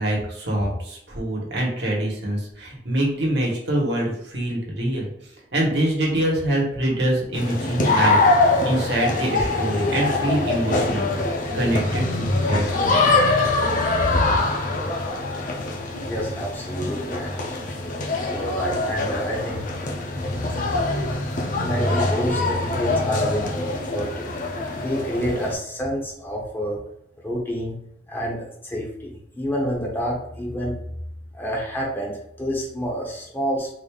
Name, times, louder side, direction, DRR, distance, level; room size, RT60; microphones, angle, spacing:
voice 1, 0.0-5.1 5.5-11.2 11.5-13.1, right 1 dB, 75° right, -2 dB, 1.2 m, -25 dB
sound 1, 7.3-25.5, left 2 dB, 50° left, 0.6 m, -23 dB
voice 2, 16.1-17.8 18.3-19.6 21.6-24.3 24.7-26.8 27.2-27.8 28.1-30.8 31.3-33.7, equal, 10° left, -3 dB, 0.9 m, -28 dB
3.8 x 3.3 x 2.3 m, 0.76 s
head